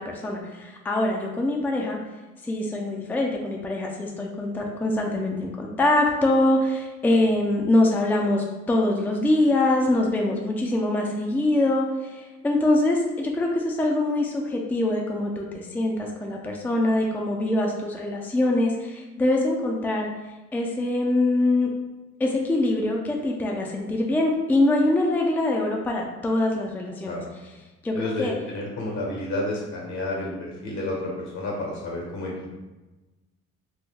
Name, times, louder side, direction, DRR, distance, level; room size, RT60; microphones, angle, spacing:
voice 1, 0.0-2.0 2.4-20.1 20.5-21.7 22.2-27.2 27.8-28.3, left 1 dB, 5° left, 0 dB, 0.4 m, -24 dB
voice 2, 27.9-32.5, left 2 dB, 70° left, -2 dB, 1.2 m, -30 dB
2.9 x 2.2 x 3.6 m, 1.1 s
cardioid pair, 90°, 30 cm